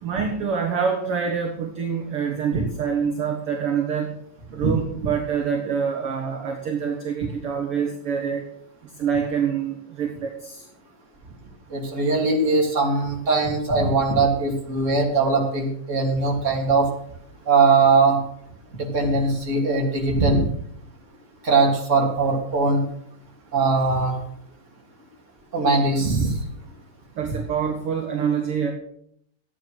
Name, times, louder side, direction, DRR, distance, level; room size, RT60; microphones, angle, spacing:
voice 1, 0.0-4.2 4.5-8.4 9.0-10.6 27.2-28.7, right 6 dB, 50° right, 1 dB, 2.2 m, -26 dB
voice 2, 11.7-16.9 17.5-18.2 18.7-20.4 21.4-22.8 23.5-24.1 25.5-26.3, right 3 dB, 20° right, -1 dB, 3.0 m, -20 dB
14.0 x 9.7 x 6.3 m, 0.69 s
omnidirectional pair, 3.8 m